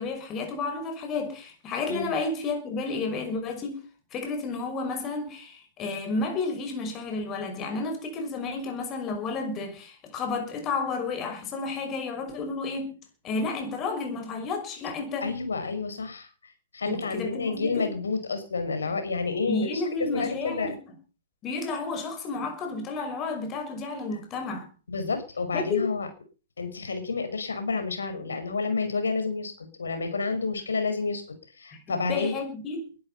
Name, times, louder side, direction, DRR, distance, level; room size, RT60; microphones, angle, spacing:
voice 1, 0.0-3.8 4.1-13.0 13.2-15.3 16.9-17.9 19.5-20.8 21.4-24.7 25.5-25.9 31.7-32.8, left 3 dB, 20° left, 5.8 m, -31 dB
voice 2, 15.2-20.8 24.9-26.1 26.6-32.3, left 4 dB, 70° left, 5.6 m, -30 dB
21.5 x 12.0 x 5.7 m
figure-of-eight pair, 125°, 0 cm